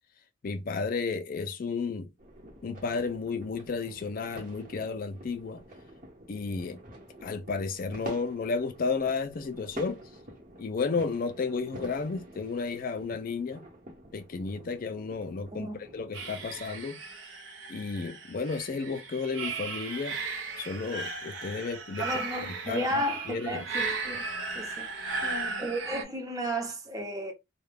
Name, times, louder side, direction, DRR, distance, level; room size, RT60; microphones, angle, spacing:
voice 1, 0.4-2.1 2.6-5.6 6.3-6.8 7.2-10.0 10.6-13.6 14.1-17.0 17.7-20.2 20.6-22.1 22.4-23.7 25.0-25.7, left 4 dB, 45° left, 0.4 m, -33 dB
sound 1, 2.2-16.7, right 1 dB, 40° right, 1.0 m, -48 dB
sound 2, 16.1-26.0, right 4 dB, 65° right, 0.6 m, -36 dB
voice 2, 22.0-24.3 24.5-25.2 25.6-27.3, right 1 dB, 20° right, 0.7 m, -33 dB
2.3 x 2.1 x 3.3 m
head